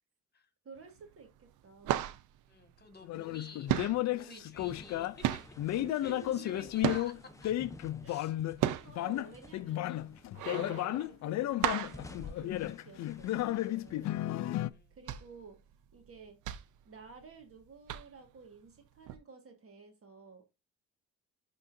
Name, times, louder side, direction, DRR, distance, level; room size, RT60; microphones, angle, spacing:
voice 1, 0.6-2.1 3.4-3.5 4.2-4.4 5.7-6.7 8.0-8.4 8.7-14.2 14.9-15.6 15.9-16.4 16.8-20.6, right 5 dB, 50° right, 1.7 m, -53 dB
sound 1, 0.8-1.2 1.5-3.4 3.7-7.4 7.9-13.1 13.5-13.6 14.0-14.2 14.7-17.5 17.9-18.4 19.1-19.2, right 12 dB, 80° right, 0.6 m, -35 dB
voice 2, 2.5-3.8 4.0-5.4 6.0-7.1 7.4-7.6 8.0-8.3 14.7-15.0, left 4 dB, 35° left, 1.7 m, -52 dB
sound 2, 3.0-5.2 5.6-8.6 8.9-14.7, left 14 dB, 65° left, 0.5 m, -33 dB
sound 3, 4.6-9.7 10.0-10.8 11.3-14.2, left 2 dB, 10° left, 0.9 m, -53 dB
11.0 x 3.8 x 2.6 m
cardioid pair, 90°, 30 cm